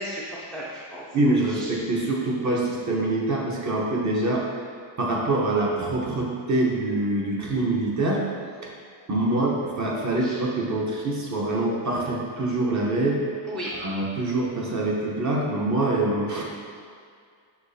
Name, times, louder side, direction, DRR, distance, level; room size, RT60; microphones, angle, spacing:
voice 1, 0.0-1.0 1.4-1.7 9.2-9.5 10.2-10.4 13.4-13.7, equal, ahead, -6 dB, 0.4 m, -35 dB
voice 2, 1.1-4.7 5.0-8.2 8.6-8.7 9.1-13.2 13.8-16.4, right 2 dB, 35° right, -3 dB, 0.8 m, -25 dB
6.0 x 3.1 x 2.7 m, 2.2 s
cardioid pair, 125°, 49 cm